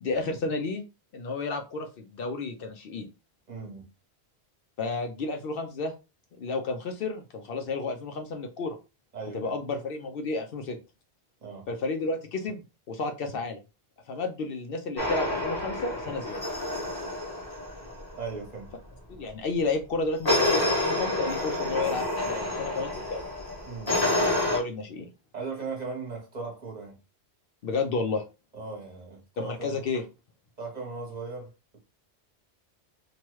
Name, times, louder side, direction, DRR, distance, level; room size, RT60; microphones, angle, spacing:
voice 1, 0.0-0.8 1.1-3.1 4.8-5.9 6.4-8.8 9.3-10.8 11.7-13.6 14.1-16.4 19.1-23.2 24.5-25.1 27.6-28.2 29.4-30.0, left 3 dB, 65° left, 0.7 m, -31 dB
voice 2, 3.5-3.8 9.1-9.5 11.4-11.7 18.2-18.7 23.6-24.1 25.3-27.0 28.5-29.8 30.6-31.5, right 4 dB, 40° right, 1.0 m, -38 dB
sound 1, 15.0-18.1 20.3-24.6, left 1 dB, 20° left, 0.9 m, -28 dB
2.9 x 2.3 x 3.0 m
omnidirectional pair, 1.1 m